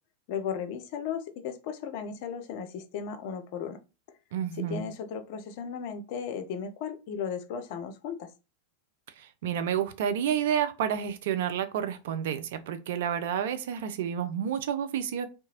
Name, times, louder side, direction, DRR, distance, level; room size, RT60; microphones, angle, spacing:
voice 1, 0.3-3.8 4.6-8.3, left 7 dB, 45° left, 0.4 m, -35 dB
voice 2, 4.3-4.9 9.2-15.3, right 9 dB, 55° right, 0.3 m, -30 dB
2.7 x 2.2 x 2.8 m
figure-of-eight pair, 90°, 0 cm